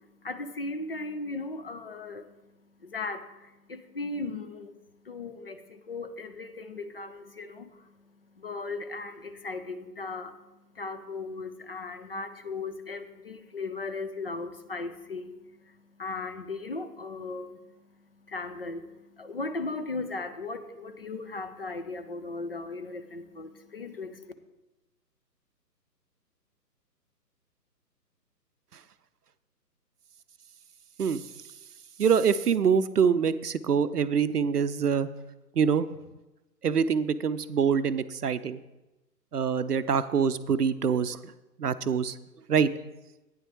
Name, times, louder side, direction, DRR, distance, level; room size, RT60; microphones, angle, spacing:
voice 1, 0.0-4.7 5.0-24.3, left 3 dB, 35° left, 10 dB, 0.6 m, -37 dB
voice 2, 32.0-35.1 35.6-35.9 36.6-38.6 39.3-41.3 41.6-42.1 42.5-42.7, right 6 dB, 65° right, 14 dB, 0.7 m, -25 dB
12.5 x 9.5 x 3.0 m, 1.0 s
figure-of-eight pair, 135°, 50 cm